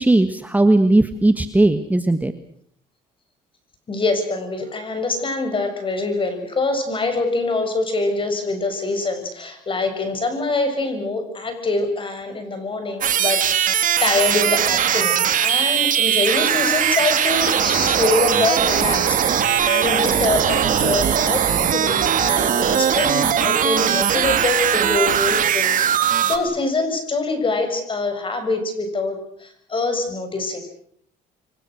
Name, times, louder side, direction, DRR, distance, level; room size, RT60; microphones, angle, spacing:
voice 1, 0.0-2.3, right 2 dB, 10° right, 9 dB, 1.5 m, -17 dB
voice 2, 3.9-30.6, left 3 dB, 30° left, 7 dB, 7.3 m, -24 dB
sound 1, 13.0-26.4, right 9 dB, 50° right, 3.0 m, -19 dB
29.0 x 24.0 x 6.5 m, 0.63 s
cardioid pair, 110°, 17 cm